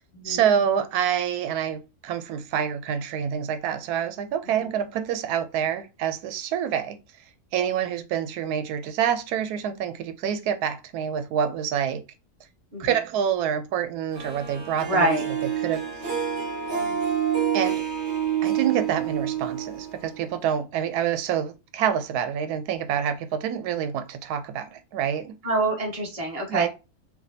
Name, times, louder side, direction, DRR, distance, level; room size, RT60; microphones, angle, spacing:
voice 1, 0.2-7.0 7.5-12.0 12.8-15.8 17.5-17.8 18.4-25.4 26.5-26.7, right 8 dB, 90° right, 1.1 m, -27 dB
Harp, 14.1-20.4, right 9 dB, 65° right, 1.5 m, -28 dB
voice 2, 14.9-15.2 16.8-17.0 25.4-26.7, right 1 dB, 25° right, 1.2 m, -26 dB
5.8 x 2.1 x 2.6 m
omnidirectional pair, 1.6 m